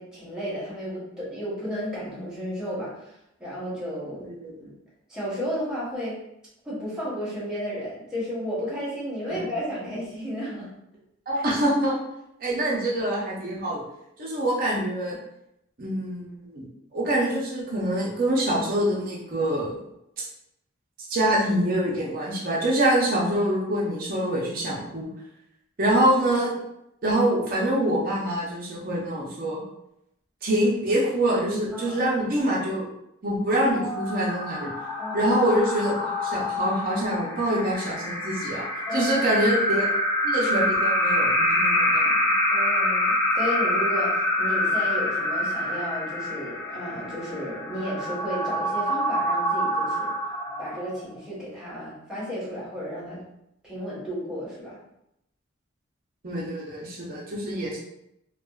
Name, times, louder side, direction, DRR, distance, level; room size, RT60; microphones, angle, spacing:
voice 1, 0.0-3.1 3.4-4.3 4.6-4.7 5.1-6.2 6.6-10.7 11.3-11.4 12.5-12.6 31.7-32.1 35.0-35.3 38.9-39.3 42.5-50.1 50.6-53.2 53.6-54.8, equal, 5° right, -10 dB, 1.0 m, -33 dB
voice 2, 4.2-4.5 9.3-9.4 11.3-12.0 12.4-13.8 14.2-15.2 15.8-16.7 16.9-19.8 20.2-20.3 21.1-25.1 25.8-26.5 27.0-29.6 30.4-32.9 33.2-34.7 35.1-38.7 38.9-39.9 40.2-42.2 56.2-57.8, right 1 dB, 45° right, -5 dB, 0.5 m, -25 dB
sound 1, 33.7-51.1, left 1 dB, 15° left, 0.4 m, -26 dB
2.7 x 2.3 x 2.3 m, 0.82 s
head